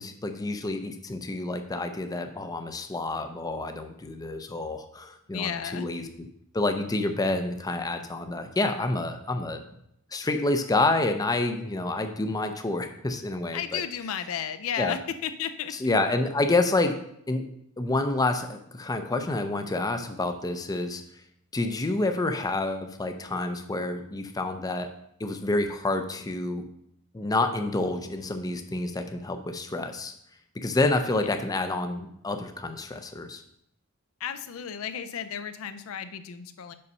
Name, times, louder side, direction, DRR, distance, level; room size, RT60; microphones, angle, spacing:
voice 1, 0.0-6.1 6.5-9.6 10.1-13.8 14.8-14.9 15.8-17.0 17.3-17.4 17.8-21.0 21.5-24.9 25.2-26.6 27.1-30.1 30.6-33.4, left 2 dB, 15° left, 7 dB, 0.5 m, -28 dB
voice 2, 5.3-5.9 13.5-15.7 34.2-36.7, left 8 dB, 70° left, 11 dB, 0.5 m, -33 dB
5.4 x 5.2 x 5.3 m, 0.74 s
head